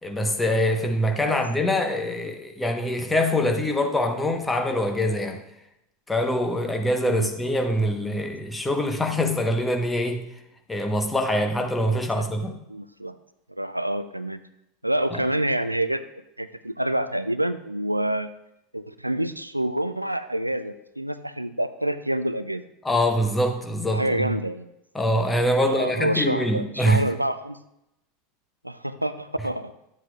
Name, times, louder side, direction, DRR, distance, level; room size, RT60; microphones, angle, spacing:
voice 1, 0.0-5.4 6.1-10.2 10.7-12.6 15.1-15.2 22.8-24.2 24.9-27.0, left 1 dB, 10° left, 1.0 m, -24 dB
voice 2, 11.9-12.2 12.7-13.1 13.6-14.4 14.8-16.0 16.4-18.3 18.7-22.6 23.9-24.7 25.6-27.6 28.6-29.7, right 1 dB, 90° right, 0.3 m, -27 dB
10.5 x 7.7 x 2.4 m
figure-of-eight pair, 80°, 0 cm